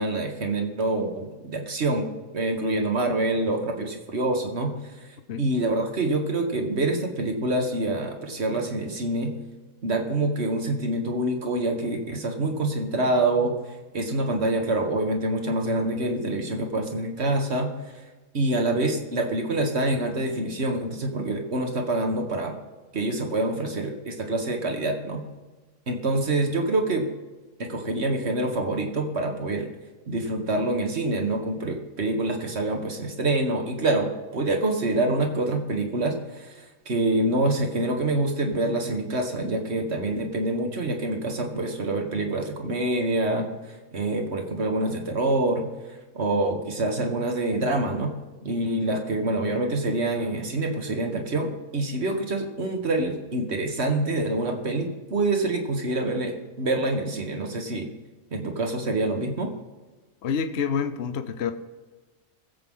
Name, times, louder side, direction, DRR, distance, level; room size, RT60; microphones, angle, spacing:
voice 1, 0.0-2.1 2.3-4.7 5.4-9.3 9.8-13.6 13.9-17.7 18.3-22.6 22.9-25.2 25.9-27.1 27.6-29.7 30.1-45.7 46.2-48.1 48.4-57.9 58.3-59.5, right 2 dB, 50° right, 3 dB, 1.9 m, -26 dB
voice 2, 60.2-61.5, left 6 dB, 55° left, 8 dB, 1.0 m, -27 dB
21.0 x 8.0 x 3.8 m, 1.2 s
omnidirectional pair, 1.5 m